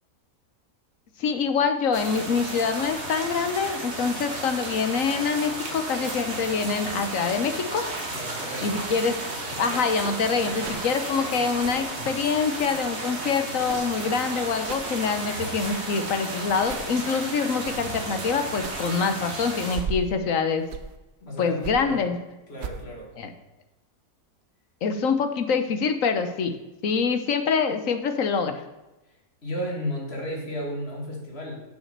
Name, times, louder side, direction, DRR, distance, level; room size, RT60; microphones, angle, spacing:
voice 1, 1.2-7.8 8.6-9.2 9.5-20.6 21.4-22.2 23.2-23.3 24.8-26.6 26.8-28.6, left 5 dB, 60° left, 8 dB, 1.2 m, -25 dB
sound 1, 1.9-19.8, right 2 dB, 45° right, 1.9 m, -33 dB
voice 2, 8.1-8.7 10.4-10.7 21.2-22.0 22.5-23.1 29.4-31.6, equal, 40° left, -1 dB, 2.5 m, -34 dB
sound 2, 10.6-10.8 11.6-11.9 12.6-12.8 13.6-14.0 14.6-14.9 15.6-15.8 16.6-16.9 17.6-17.8 18.6-18.8 19.6-20.2 20.6-21.0 21.6-21.8 22.6-22.8, right 6 dB, 60° right, 0.7 m, -37 dB
7.8 x 6.6 x 6.7 m, 1.0 s
omnidirectional pair, 1.7 m